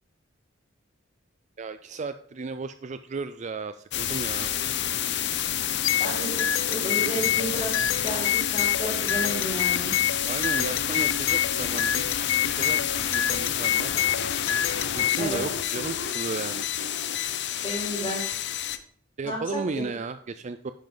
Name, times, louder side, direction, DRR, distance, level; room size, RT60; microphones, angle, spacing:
voice 1, 1.6-4.5 10.3-12.1 12.4-14.0 14.9-16.7 19.2-20.7, right 4 dB, 35° right, 11 dB, 0.4 m, -34 dB
sound 1, 3.9-18.8, left 10 dB, 60° left, 0.8 m, -29 dB
sound 2, 5.8-15.3, left 11 dB, 90° left, 0.5 m, -28 dB
voice 2, 6.0-7.7 8.0-9.9 15.2-15.4 17.6-18.2 19.2-19.8, right 1 dB, 25° left, -4 dB, 4.6 m, -32 dB
10.5 x 10.5 x 3.9 m, 0.62 s
head